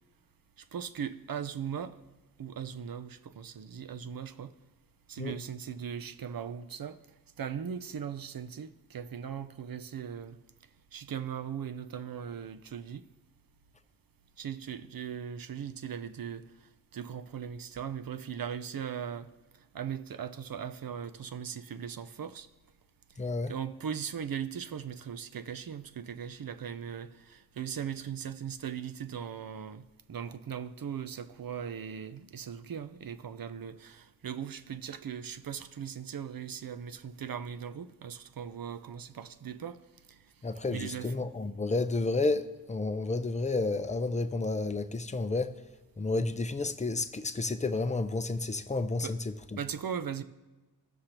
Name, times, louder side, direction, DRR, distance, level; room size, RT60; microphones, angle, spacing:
voice 1, 0.7-2.0 2.4-4.5 5.1-7.0 7.4-10.4 10.9-13.0 14.4-16.4 16.9-19.3 19.7-22.5 23.5-39.8 40.1-40.2 40.7-41.1 49.0-49.2 49.6-50.2, right 8 dB, 60° right, 0.6 m, -39 dB
voice 2, 23.2-23.5 40.4-45.5 46.0-49.6, left 3 dB, 20° left, 0.5 m, -31 dB
16.0 x 6.5 x 2.9 m
wide cardioid pair, 75°, 39 cm